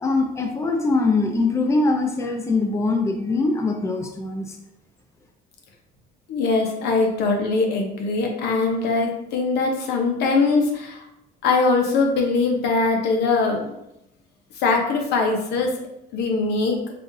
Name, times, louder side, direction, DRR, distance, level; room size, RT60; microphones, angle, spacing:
voice 1, 0.0-4.6, left 3 dB, 15° left, 3 dB, 0.5 m, -22 dB
voice 2, 6.3-11.1 11.4-13.7 14.5-15.7 16.1-16.8, left 3 dB, 80° left, 2 dB, 0.9 m, -21 dB
5.6 x 2.5 x 2.6 m, 0.83 s
cardioid pair, 110°, 17 cm